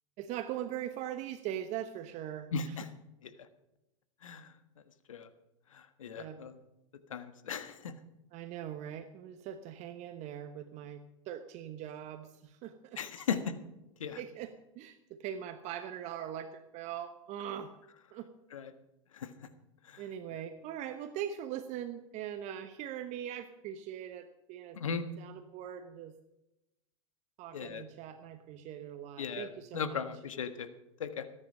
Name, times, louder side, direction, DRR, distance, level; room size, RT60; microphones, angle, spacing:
voice 1, 0.2-2.5 6.1-6.4 8.3-13.0 14.2-17.7 18.1-18.3 20.0-24.8 25.2-26.1 27.4-30.0, right 10 dB, 45° right, 9 dB, 1.1 m, -41 dB
voice 2, 2.5-2.9 3.2-3.5 4.2-4.5 5.1-5.3 5.7-6.6 7.1-8.0 13.0-13.5 14.0-14.2 18.5-18.7 19.1-19.5 19.8-20.0 24.7-25.0 27.5-27.8 29.2-30.7 31.0-31.3, left 6 dB, 80° left, 10 dB, 1.5 m, -37 dB
19.0 x 9.8 x 5.5 m, 0.93 s
hypercardioid pair, 100°, 17 cm